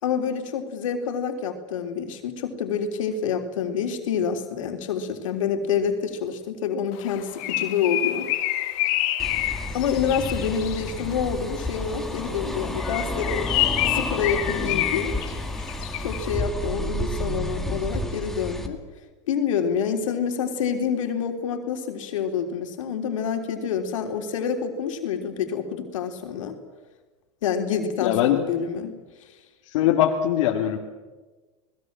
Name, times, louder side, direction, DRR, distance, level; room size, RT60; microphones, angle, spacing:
voice 1, 0.0-8.3 9.7-13.5 13.9-15.1 16.0-18.8 19.3-26.6 27.4-29.0, left 7 dB, 90° left, 5 dB, 3.6 m, -27 dB
Bird, 7.0-11.1 12.7-16.3, left 15 dB, 55° left, 2.2 m, -27 dB
sound 1, 9.2-18.7, left 1 dB, ahead, 2.3 m, -31 dB
voice 2, 28.0-28.4 29.7-30.8, left 11 dB, 75° left, -1 dB, 2.4 m, -21 dB
28.5 x 20.0 x 7.5 m, 1.3 s
supercardioid pair, 135°, 16 cm